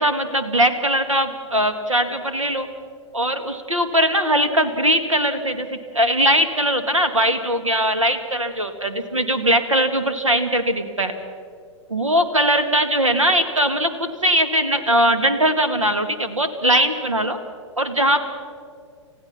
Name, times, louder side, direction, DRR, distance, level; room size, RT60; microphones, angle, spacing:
voice 1, 0.0-2.7 3.1-11.1 11.9-17.4 17.8-18.2, right 1 dB, 85° right, 9 dB, 2.1 m, -20 dB
30.0 x 15.5 x 5.9 m, 2.2 s
figure-of-eight pair, 110°, 16 cm